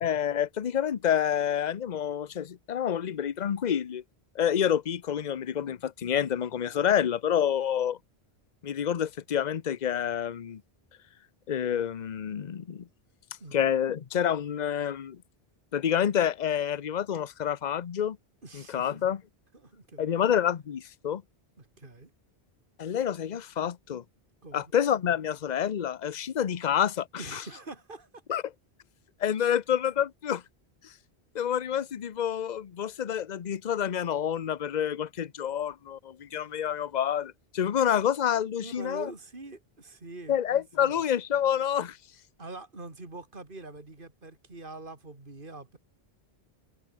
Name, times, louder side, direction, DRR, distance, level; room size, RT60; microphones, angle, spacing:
voice 1, 0.0-4.0 4.3-8.0 8.6-10.6 11.5-12.9 13.5-15.2 15.7-18.2 18.5-19.2 20.0-21.2 22.8-24.0 24.5-27.4 28.3-28.4 29.2-30.4 30.8-30.9 31.3-39.1 40.3-42.0, left 9 dB, 45° left, 0.8 m, -28 dB
voice 2, 18.4-18.9 19.5-20.2 21.6-22.1 24.4-24.6 27.2-28.2 29.4-29.6 38.6-40.4 40.8-41.0 42.4-45.8, right 2 dB, 55° right, 3.4 m, -44 dB
omnidirectional pair, 1.1 m